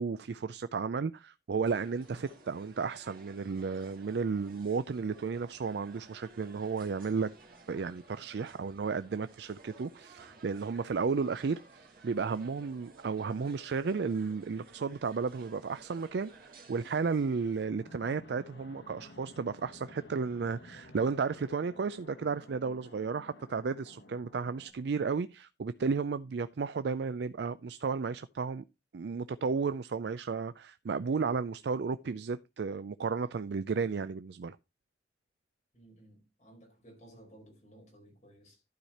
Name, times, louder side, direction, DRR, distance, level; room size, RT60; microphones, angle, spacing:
voice 1, 0.0-7.3 7.7-28.6 28.9-34.6, right 5 dB, 70° right, 0.4 m, -33 dB
sound 1, 1.6-17.7, right 3 dB, 50° right, 2.0 m, -56 dB
Fixed-wing aircraft airplane, 17.6-24.7, left 1 dB, 80° left, 1.6 m, -54 dB
voice 2, 35.7-38.6, right 1 dB, 40° left, 4.4 m, -57 dB
12.0 x 4.9 x 4.2 m
head